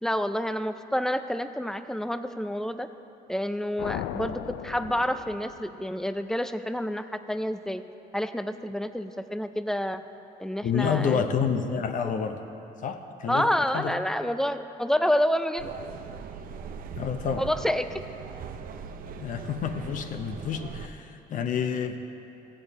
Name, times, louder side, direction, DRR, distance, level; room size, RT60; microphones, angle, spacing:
voice 1, 0.0-2.9 3.3-7.8 8.1-10.0 10.4-11.2 13.3-15.7 17.4-18.0, equal, 5° left, 10 dB, 0.4 m, -28 dB
sound 1, 3.8-6.0, left 11 dB, 80° left, 0.4 m, -37 dB
voice 2, 10.6-12.4 12.8-13.9 17.0-17.5 19.2-22.0, left 7 dB, 50° left, 7 dB, 0.7 m, -29 dB
sound 2, 15.6-20.9, right 6 dB, 55° right, 0.6 m, -40 dB
15.5 x 7.8 x 4.1 m, 2.9 s
cardioid pair, 110°, 17 cm